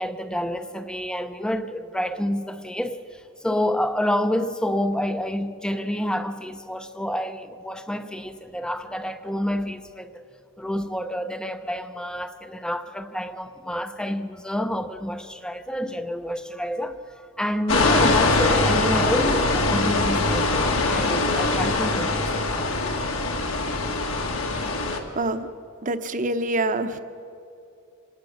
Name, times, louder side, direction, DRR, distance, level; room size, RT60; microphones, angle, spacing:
voice 1, 0.0-10.2 10.6-22.6, equal, 5° left, 0.7 m, -28 dB
sound 1, 17.7-25.0, left 2 dB, 65° left, 2.2 m, -22 dB
voice 2, 25.1-25.5 25.8-27.0, right 2 dB, 35° right, 1.0 m, -25 dB
26.0 x 19.0 x 6.5 m
head